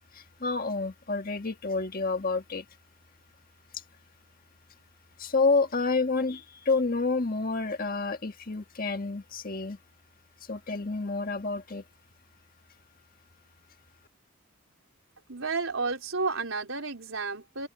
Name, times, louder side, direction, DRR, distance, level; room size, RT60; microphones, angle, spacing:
voice 1, 0.1-2.6 5.2-9.8 10.5-11.8, left 3 dB, 40° left, 1.6 m, -29 dB
voice 2, 15.3-17.7, right 4 dB, 70° right, 4.3 m, -31 dB
open air
head